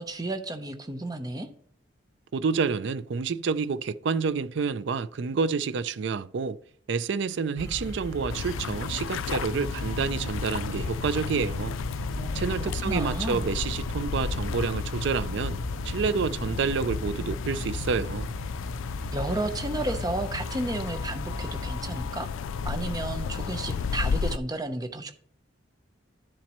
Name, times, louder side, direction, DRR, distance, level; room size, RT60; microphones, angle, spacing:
voice 1, 0.0-1.5 12.2-13.4 19.1-22.3 22.6-25.1, right 2 dB, 20° right, 0.7 m, -32 dB
voice 2, 2.3-6.6 6.9-11.8 12.3-15.6 15.8-18.3, right 5 dB, 60° right, 0.4 m, -28 dB
sound 1, 7.6-22.1, equal, 15° left, 1.7 m, -37 dB
sound 2, 8.3-24.4, left 6 dB, 80° left, 0.4 m, -33 dB
12.0 x 7.2 x 3.0 m
head